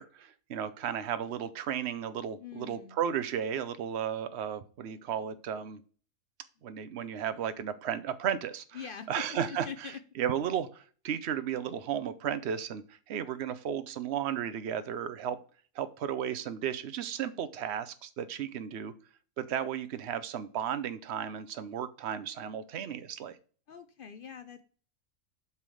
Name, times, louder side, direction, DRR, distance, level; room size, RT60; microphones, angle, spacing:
voice 1, 0.0-5.8 6.6-8.8 9.1-15.4 15.7-18.9 19.4-23.4, right 9 dB, 55° right, 13 dB, 0.9 m, -34 dB
voice 2, 2.3-3.0 8.7-10.0 23.7-24.6, left 7 dB, 60° left, 9 dB, 0.5 m, -43 dB
8.3 x 3.6 x 6.2 m, 0.42 s
omnidirectional pair, 1.5 m